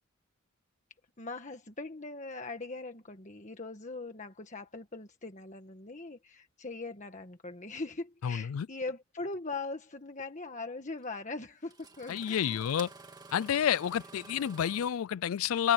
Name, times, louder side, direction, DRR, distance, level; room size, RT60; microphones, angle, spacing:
voice 1, 1.2-12.6, left 3 dB, 35° left, 1.5 m, -41 dB
voice 2, 8.2-8.7 12.1-12.9 13.3-15.7, left 9 dB, 85° left, 0.4 m, -29 dB
Engine starting, 9.3-9.4 11.0-11.1 11.6-14.9, right 3 dB, 20° right, 2.2 m, -51 dB
open air
head